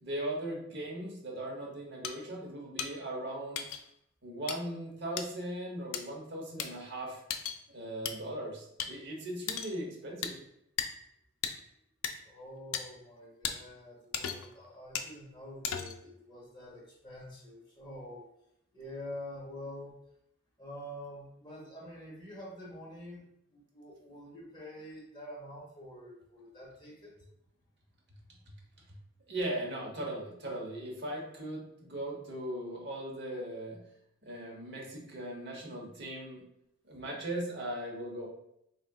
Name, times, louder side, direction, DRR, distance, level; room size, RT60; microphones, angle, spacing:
voice 1, 0.0-3.6 4.2-7.2 7.7-10.3 29.3-33.8 34.2-36.4 36.8-38.3, right 1 dB, 50° right, -1 dB, 0.9 m, -38 dB
sound 1, 2.0-2.1 2.8-2.9 3.6-3.8 4.5-4.6 5.2-5.3 5.9-6.0 6.6-6.7 7.3-7.6 8.1-8.2 8.8-8.9 9.5-9.7 10.2-10.3 10.8-10.9 11.4-11.5 12.0-12.1 12.7-12.8 13.4-13.6 14.1-14.5 15.0-15.1 15.6-16.0, left 7 dB, 70° left, 0.4 m, -35 dB
voice 2, 12.2-18.3 18.7-19.9 20.6-27.1, left 1 dB, 20° left, -3 dB, 0.8 m, -47 dB
4.0 x 3.6 x 2.3 m, 0.78 s
head